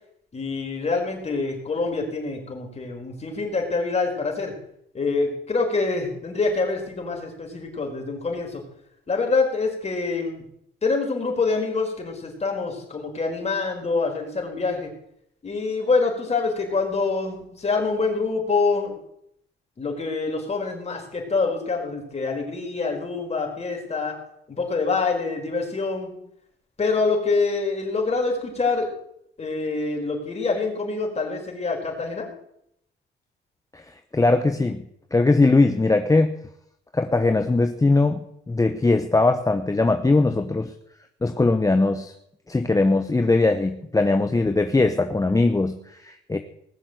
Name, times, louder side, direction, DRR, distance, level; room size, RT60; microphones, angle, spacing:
voice 1, 0.3-4.5 4.9-8.6 9.1-10.4 10.8-14.9 15.4-19.0 19.8-24.1 24.5-26.1 26.8-28.9 29.4-32.3, left 4 dB, 35° left, 1 dB, 5.0 m, -25 dB
voice 2, 34.1-34.8 35.1-36.3 36.9-38.2 38.5-40.7 41.2-42.1 42.5-46.4, left 3 dB, 15° left, 7 dB, 1.0 m, -20 dB
19.5 x 7.3 x 8.1 m, 0.74 s
cardioid pair, 90°, 20 cm